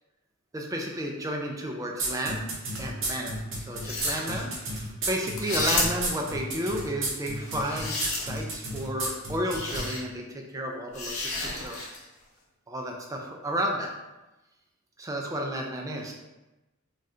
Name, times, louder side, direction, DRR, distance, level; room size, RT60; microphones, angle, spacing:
voice 1, 0.5-2.5 2.8-11.8 12.7-13.9 15.0-16.1, equal, 15° right, 1 dB, 0.3 m, -32 dB
sound 1, 2.0-9.9, right 2 dB, 60° right, 0.7 m, -32 dB
sound 2, 3.7-4.4 5.3-6.2 7.4-8.6 9.5-10.0 10.9-12.0, left 2 dB, 90° left, 0.7 m, -32 dB
3.4 x 2.4 x 2.6 m, 1.0 s
head